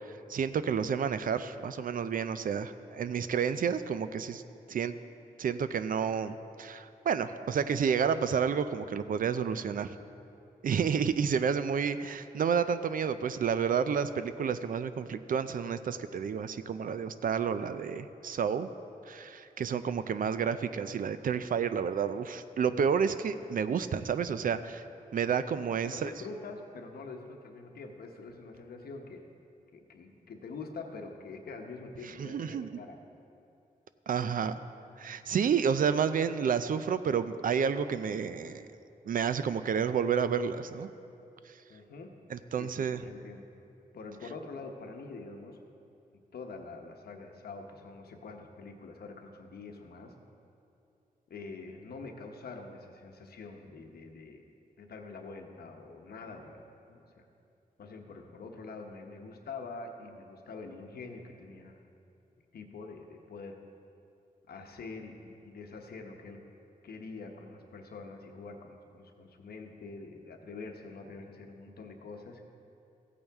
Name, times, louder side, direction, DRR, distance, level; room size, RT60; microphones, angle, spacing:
voice 1, 0.3-4.4 4.7-5.0 5.4-9.9 10.6-18.7 19.1-24.8 25.1-26.1 32.2-32.7 34.1-34.5 35.0-38.7 39.1-40.9 42.3-43.0, right 7 dB, 65° right, 12 dB, 0.4 m, -30 dB
voice 2, 25.8-29.3 29.7-33.0 41.7-42.2 42.5-43.5 43.9-45.6 46.3-50.2 51.3-54.4 54.8-56.6 56.9-57.3 57.8-61.9 62.5-63.6 64.5-66.4 66.8-72.5, left 3 dB, 85° left, 3 dB, 1.0 m, -45 dB
15.0 x 8.6 x 3.5 m, 2.7 s
wide cardioid pair, 100°, 16 cm